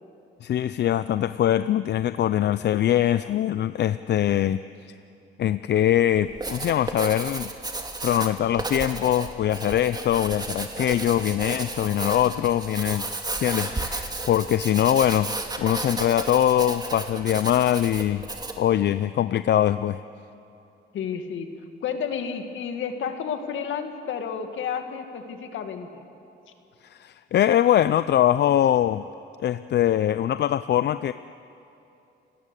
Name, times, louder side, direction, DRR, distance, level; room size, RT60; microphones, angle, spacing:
voice 1, 0.4-4.6 5.4-7.5 8.0-13.0 13.4-15.3 15.6-18.3 18.6-20.0 26.9-29.0 29.4-31.1, left 11 dB, 60° left, 14 dB, 0.5 m, -22 dB
Writing, 6.2-18.7, right 2 dB, 20° right, 2.5 m, -33 dB
voice 2, 20.9-21.5 21.8-26.0, left 7 dB, 75° left, 6 dB, 2.2 m, -31 dB
30.0 x 17.5 x 8.3 m, 2.8 s
cardioid pair, 90°, 20 cm